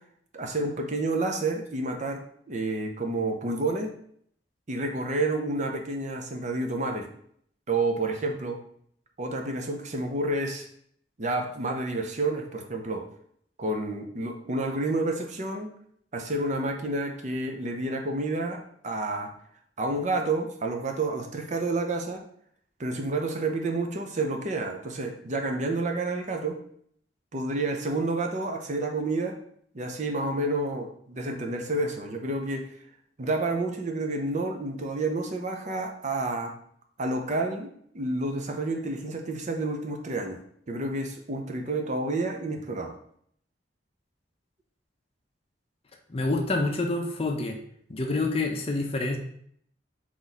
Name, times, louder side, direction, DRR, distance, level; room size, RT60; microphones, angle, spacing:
voice 1, 0.3-2.2 2.5-3.9 4.7-7.1 7.7-8.6 9.2-10.7 11.2-13.0 13.6-15.7 16.1-19.3 19.8-22.2 22.8-26.6 27.3-29.4 29.7-32.7 33.2-36.5 37.0-37.7 37.9-40.4 40.7-42.9, right 2 dB, 40° right, 3 dB, 0.6 m, -29 dB
voice 2, 46.1-47.6 47.9-49.2, left 2 dB, 30° left, 3 dB, 0.5 m, -27 dB
4.1 x 3.1 x 3.9 m, 0.66 s
head